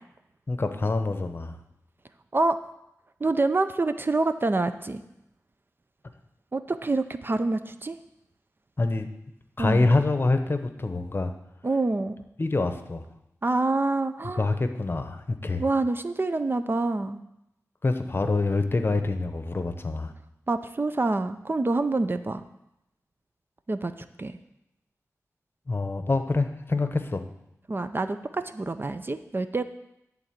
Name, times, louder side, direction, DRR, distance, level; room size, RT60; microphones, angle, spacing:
voice 1, 0.5-1.6 8.8-9.1 9.6-11.3 12.4-13.0 14.4-15.6 17.8-20.1 25.7-27.2, left 3 dB, 40° left, 8 dB, 0.9 m, -26 dB
voice 2, 3.2-5.0 6.5-8.0 9.6-9.9 11.6-12.1 13.4-14.5 15.6-17.2 20.5-22.4 23.7-23.9 24.2-24.4 27.7-29.6, right 3 dB, 35° right, 10 dB, 0.5 m, -26 dB
11.5 x 3.9 x 7.4 m, 0.85 s
wide cardioid pair, 60°, 6 cm